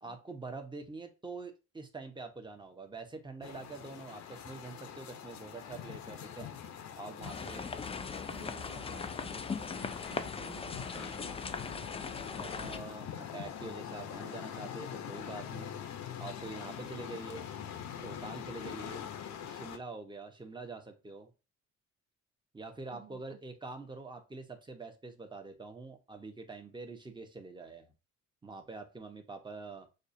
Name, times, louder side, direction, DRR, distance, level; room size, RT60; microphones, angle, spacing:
voice 1, 0.0-6.5 7.0-7.6 12.3-15.8 16.2-17.4 18.0-19.0 19.4-21.3 22.5-27.9 28.4-29.9, right 3 dB, 15° right, 1.0 m, -45 dB
sound 1, 3.4-19.8, left 9 dB, 65° left, 0.8 m, -44 dB
voice 2, 7.1-8.0 8.2-11.8 22.9-23.4, right 8 dB, 65° right, 0.5 m, -54 dB
sound 2, 7.2-12.8, left 5 dB, 20° left, 0.4 m, -39 dB
6.4 x 2.4 x 2.7 m
cardioid pair, 90°, 30 cm